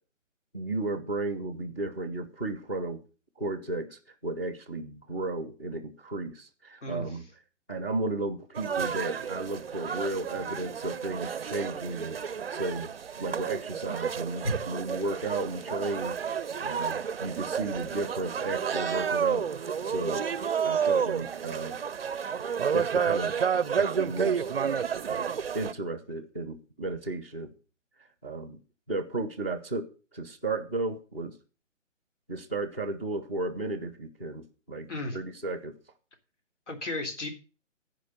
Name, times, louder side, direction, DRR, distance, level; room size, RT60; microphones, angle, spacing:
voice 1, 0.5-3.0 3.4-7.2 7.7-12.9 13.2-16.2 16.6-20.3 20.6-21.8 22.7-24.5 25.0-27.5 28.2-28.6 28.9-29.9 30.1-31.3 32.3-35.7, right 2 dB, 10° left, -2 dB, 0.6 m, -34 dB
sound 1, 8.5-25.7, right 7 dB, 50° right, 0.5 m, -30 dB
voice 2, 36.7-37.3, left 1 dB, 65° left, 4 dB, 3.6 m, -32 dB
14.0 x 5.1 x 6.8 m, 0.35 s
figure-of-eight pair, 145°, 38 cm